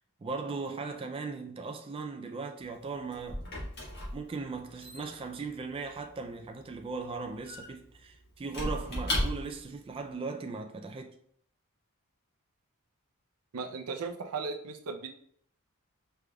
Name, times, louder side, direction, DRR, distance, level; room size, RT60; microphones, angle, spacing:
voice 1, 0.2-3.6 4.1-11.2, right 4 dB, 25° right, 0.3 m, -38 dB
Squeak / Wood, 2.6-9.8, left 1 dB, 50° left, 1.4 m, -37 dB
voice 2, 13.5-15.1, right 4 dB, 80° right, 0.5 m, -36 dB
4.9 x 3.4 x 2.3 m
head